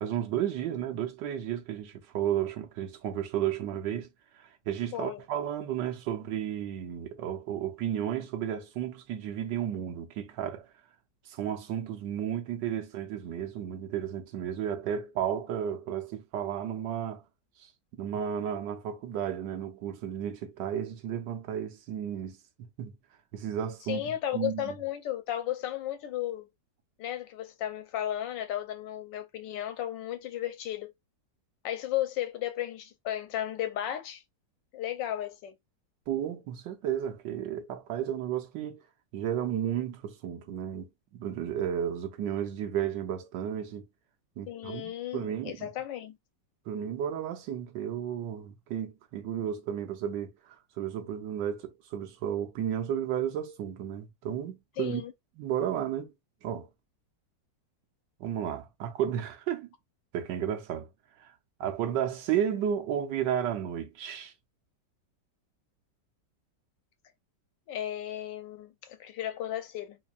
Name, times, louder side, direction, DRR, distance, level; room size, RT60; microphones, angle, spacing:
voice 1, 0.0-4.1 4.3-10.7 11.3-17.2 17.6-23.0 23.3-24.7 36.1-38.8 39.1-43.9 44.4-45.7 46.7-55.0 55.4-56.1 56.4-56.7 58.2-59.7 60.1-60.9 61.2-61.3 61.6-64.3, right 9 dB, 80° right, 1.4 m, -33 dB
voice 2, 23.9-26.5 27.0-30.9 31.6-34.2 34.7-35.5 44.5-46.2 54.8-55.1 67.7-70.0, left 12 dB, 85° left, 1.4 m, -34 dB
4.3 x 2.8 x 2.4 m
omnidirectional pair, 1.9 m